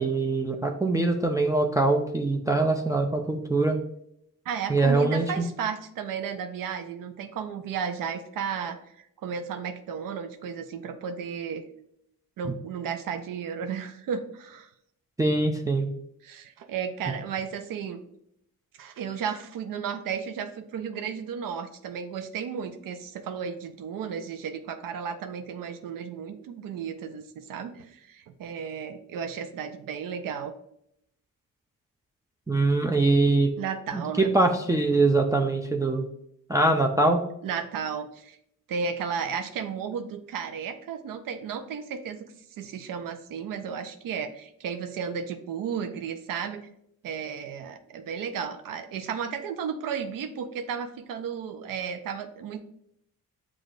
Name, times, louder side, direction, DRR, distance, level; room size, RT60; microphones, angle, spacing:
voice 1, 0.0-3.8 4.7-5.5 15.2-15.9 32.5-33.5 33.9-36.1 36.5-37.2, right 2 dB, 10° right, 2 dB, 0.4 m, -23 dB
voice 2, 4.5-11.6 12.4-14.7 16.2-18.0 18.8-30.5 33.6-34.3 37.4-38.4 38.7-42.2 42.5-46.6 47.0-52.6, right 7 dB, 70° right, 7 dB, 0.5 m, -34 dB
6.3 x 2.5 x 2.4 m, 0.74 s
cardioid pair, 65°, 34 cm